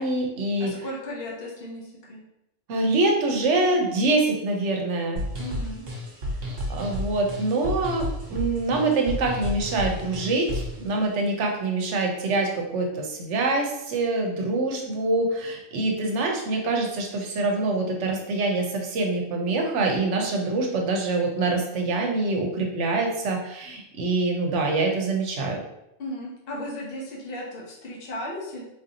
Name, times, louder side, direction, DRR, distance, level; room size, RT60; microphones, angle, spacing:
voice 1, 0.0-0.7 2.7-5.2 6.7-25.6, right 2 dB, 85° right, 2 dB, 1.0 m, -25 dB
voice 2, 0.6-2.2 5.4-5.8 26.0-28.6, left 1 dB, 55° left, -3 dB, 1.0 m, -35 dB
sound 1, 5.2-10.8, equal, 55° right, 1.0 m, -31 dB
3.8 x 2.7 x 2.7 m, 0.86 s
omnidirectional pair, 1.2 m